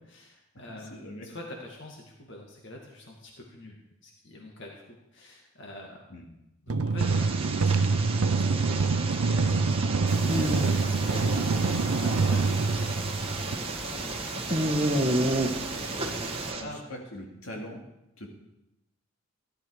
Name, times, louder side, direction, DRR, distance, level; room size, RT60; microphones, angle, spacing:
voice 1, 0.1-4.8 5.1-6.0 6.6-9.8 10.3-11.6 12.0-14.6 15.4-16.8, left 1 dB, 55° left, 0 dB, 2.2 m, -46 dB
voice 2, 0.7-1.3 6.1-6.2 15.6-17.8 18.2-18.3, left 1 dB, 75° left, 0 dB, 2.5 m, -43 dB
sound 1, 6.7-13.5, right 4 dB, 85° right, 0.6 m, -26 dB
sound 2, 7.0-16.6, right 2 dB, 25° right, 1.2 m, -31 dB
sound 3, 10.1-16.5, right 1 dB, ahead, 0.8 m, -41 dB
16.0 x 11.5 x 4.8 m, 0.92 s
head